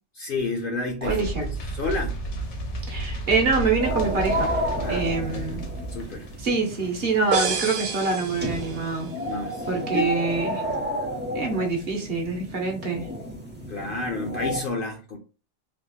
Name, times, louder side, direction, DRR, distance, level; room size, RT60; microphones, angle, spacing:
voice 1, 0.1-2.2 4.8-5.6 5.9-6.3 9.2-9.7 9.9-10.1 13.7-15.2, left 3 dB, 55° left, 2 dB, 0.6 m, -31 dB
sound 1, 1.0-6.5, right 2 dB, 70° left, 1.1 m, -32 dB
voice 2, 1.0-1.4 2.9-4.5 4.9-5.6 6.4-9.1 9.7-10.6 11.3-13.0, right 4 dB, 55° right, 2 dB, 1.0 m, -25 dB
sound 2, 3.8-14.6, equal, 15° right, 0.4 m, -32 dB
sound 3, 7.3-9.1, right 6 dB, 90° right, 1.1 m, -29 dB
3.5 x 2.8 x 2.3 m, 0.33 s
omnidirectional pair, 1.3 m